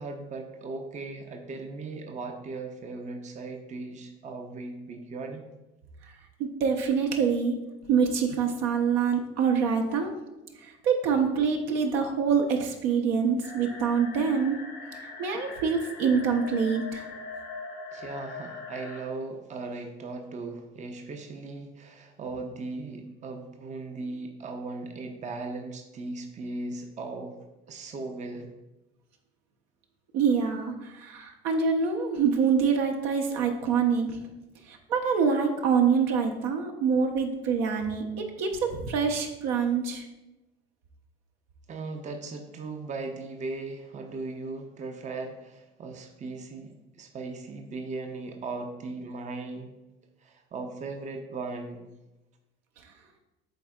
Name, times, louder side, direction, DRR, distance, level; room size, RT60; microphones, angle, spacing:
voice 1, 0.0-5.5 17.9-27.4 27.7-28.5 41.7-49.7 50.2-51.9, right 3 dB, 25° right, 4 dB, 0.7 m, -38 dB
voice 2, 6.4-7.6 7.9-10.1 10.6-14.6 15.2-17.1 30.1-34.2 34.7-40.0, right 6 dB, 60° right, 3 dB, 1.0 m, -25 dB
sound 1, 13.4-19.0, left 3 dB, 85° left, 1.9 m, -41 dB
11.5 x 4.2 x 2.4 m, 1.0 s
figure-of-eight pair, 60°, 30 cm